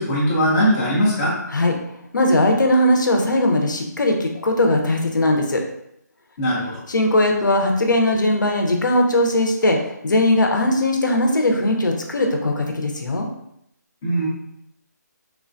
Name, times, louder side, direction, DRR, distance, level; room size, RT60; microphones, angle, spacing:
voice 1, 0.0-1.3 6.4-6.8 14.0-14.3, equal, 10° left, -8 dB, 0.4 m, -20 dB
voice 2, 2.1-5.6 6.9-13.3, left 1 dB, 90° left, 2 dB, 0.6 m, -19 dB
3.1 x 2.2 x 2.5 m, 0.77 s
hypercardioid pair, 170°, 10 cm